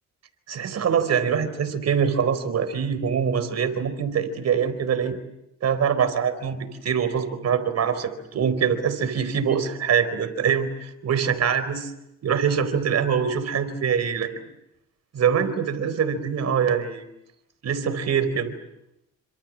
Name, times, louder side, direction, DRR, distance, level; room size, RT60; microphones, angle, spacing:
voice 1, 0.5-5.2 5.6-11.9 12.2-14.3 15.1-17.0 17.6-18.6, right 7 dB, 60° right, 10 dB, 4.3 m, -24 dB
28.5 x 26.5 x 7.6 m, 0.83 s
cardioid pair, 90°, 30 cm